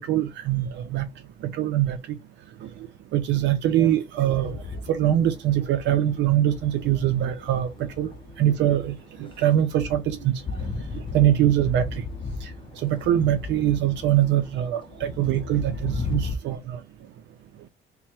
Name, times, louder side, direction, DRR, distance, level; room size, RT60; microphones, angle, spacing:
voice 1, 0.1-1.1 1.4-2.0 2.6-2.7 3.1-4.6 4.9-8.1 8.4-8.9 9.2-10.3 11.1-11.9 12.4-12.5 12.8-16.8, right 12 dB, 80° right, 0.5 m, -23 dB
sound 1, 4.3-16.4, left 3 dB, 25° left, 0.6 m, -36 dB
3.5 x 2.1 x 4.2 m
cardioid pair, 140°, 18 cm